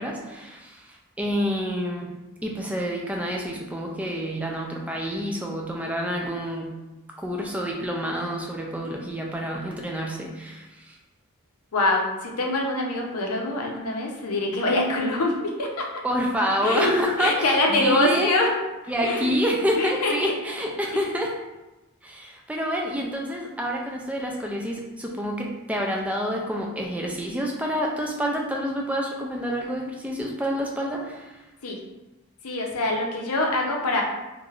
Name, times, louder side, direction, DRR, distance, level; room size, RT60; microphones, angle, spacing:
voice 1, 0.0-2.1 2.4-6.8 7.2-11.0 16.0-18.3 18.9-21.3 22.0-31.4, equal, 5° right, -1 dB, 0.3 m, -28 dB
voice 2, 11.7-15.9 16.6-16.9 17.2-18.6 19.0-19.4 19.8-20.3 31.6-31.8 32.4-34.0, left 2 dB, 90° left, 0 dB, 0.6 m, -24 dB
3.2 x 2.5 x 2.3 m, 1.0 s
head